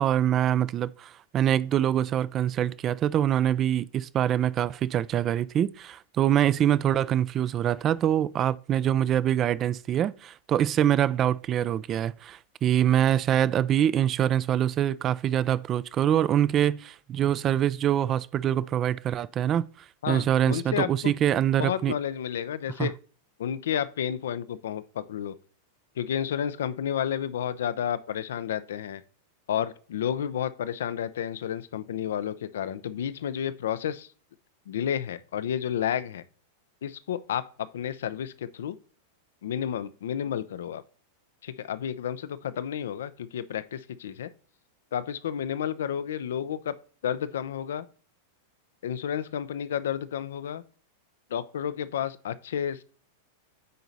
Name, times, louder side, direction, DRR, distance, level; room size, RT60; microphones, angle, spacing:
voice 1, 0.0-19.7 20.1-21.9 22.8-22.9, right 10 dB, 35° right, 0.4 m, -24 dB
voice 2, 20.0-21.1 21.6-22.9 23.4-25.4 26.0-29.0 29.5-34.1 34.7-36.2 36.8-38.8 39.4-40.8 41.4-44.3 44.9-46.7 47.0-47.9 48.8-50.6 51.3-52.8, left 9 dB, 75° left, 0.6 m, -31 dB
9.3 x 4.0 x 4.1 m
hypercardioid pair, 105°, 0 cm